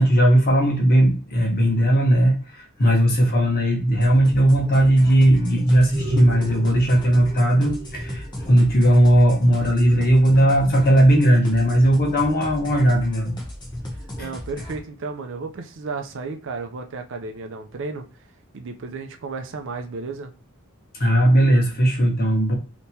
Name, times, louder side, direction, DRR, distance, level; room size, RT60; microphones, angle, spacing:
voice 1, 0.0-13.3 14.2-14.3 20.9-22.5, right 1 dB, 45° left, 1.2 m, -17 dB
sound 1, 3.9-14.8, left 1 dB, 20° left, 1.0 m, -36 dB
sound 2, 5.5-10.2, right 1 dB, 35° right, 0.9 m, -32 dB
voice 2, 13.9-18.1 18.5-20.3, right 4 dB, 60° right, 0.5 m, -33 dB
3.3 x 2.9 x 2.8 m
head